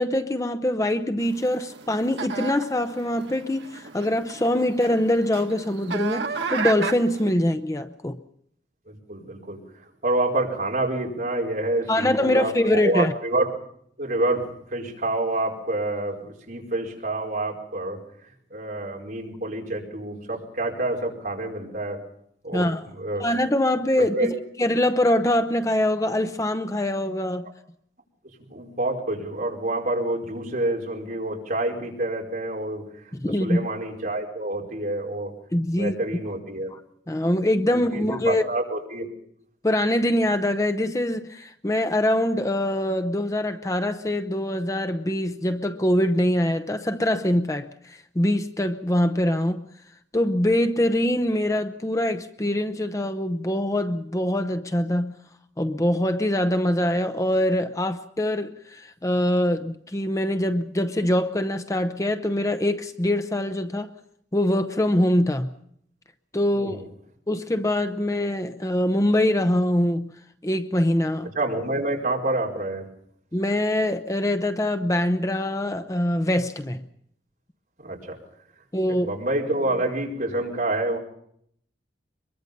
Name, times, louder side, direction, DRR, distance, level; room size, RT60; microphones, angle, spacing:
voice 1, 0.0-8.2 11.9-13.1 22.5-22.8 23.2-27.5 33.2-33.6 35.5-35.9 37.1-38.4 39.6-49.6 50.1-55.1 55.6-63.9 64.3-65.5 66.3-66.8 67.3-70.1 70.4-71.3 73.3-76.8 78.7-79.1, left 1 dB, 20° left, 0.8 m, -23 dB
sound 1, 1.2-7.3, right 5 dB, 85° right, 1.4 m, -34 dB
voice 2, 8.9-13.5 14.0-14.5 14.7-18.0 18.5-22.0 22.4-23.3 24.0-24.3 28.5-33.1 33.4-35.3 35.7-36.7 37.2-37.3 37.7-39.1 66.5-66.9 71.3-72.8 77.8-78.2 78.9-81.0, right 2 dB, 50° right, 5.0 m, -28 dB
24.0 x 22.5 x 5.4 m
head